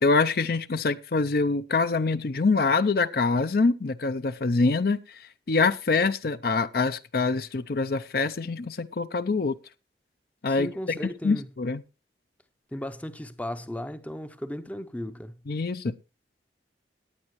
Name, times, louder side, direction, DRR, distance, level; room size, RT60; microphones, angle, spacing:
voice 1, 0.0-9.6 10.4-11.0 11.2-11.8 15.5-15.9, left 3 dB, 55° left, 0.5 m, -25 dB
voice 2, 10.5-11.5 12.7-15.3, left 1 dB, 10° left, 0.6 m, -36 dB
18.5 x 9.0 x 3.1 m
head